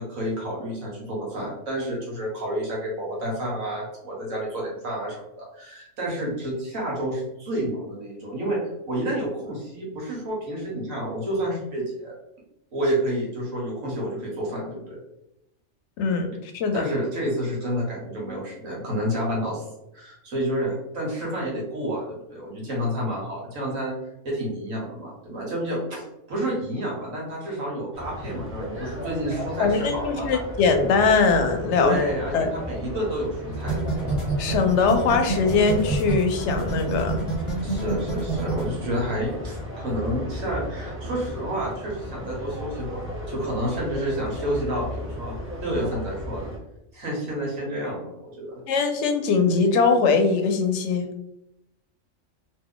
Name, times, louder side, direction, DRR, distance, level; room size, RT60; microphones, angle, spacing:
voice 1, 0.0-12.1 12.7-15.0 16.7-19.6 19.9-24.0 24.2-26.0 26.3-30.4 31.8-34.2 37.6-46.5 46.9-48.6, equal, 90° right, -3 dB, 1.6 m, -29 dB
voice 2, 16.0-16.8 29.6-32.0 32.3-32.5 34.4-37.3 48.7-51.0, left 4 dB, 65° left, 6 dB, 0.8 m, -21 dB
sound 1, 27.9-46.6, equal, 15° right, 0.6 m, -35 dB
sound 2, 33.6-38.6, right 3 dB, 30° left, 0.7 m, -27 dB
3.0 x 2.6 x 3.8 m, 0.87 s
omnidirectional pair, 1.4 m